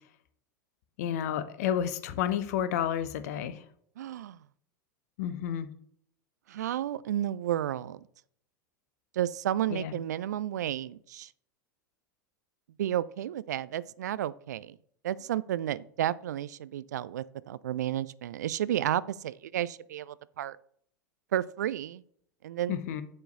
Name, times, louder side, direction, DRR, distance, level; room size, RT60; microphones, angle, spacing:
voice 1, 1.0-3.6 5.2-5.7 9.7-9.9 22.7-23.0, left 9 dB, 55° left, 12 dB, 0.8 m, -31 dB
voice 2, 4.0-4.4 6.5-8.0 9.1-11.3 12.8-14.8 15.0-20.6 21.3-22.0 22.4-22.8, right 11 dB, 60° right, 18 dB, 0.4 m, -32 dB
7.0 x 4.5 x 6.5 m, 0.65 s
figure-of-eight pair, 85°, 10 cm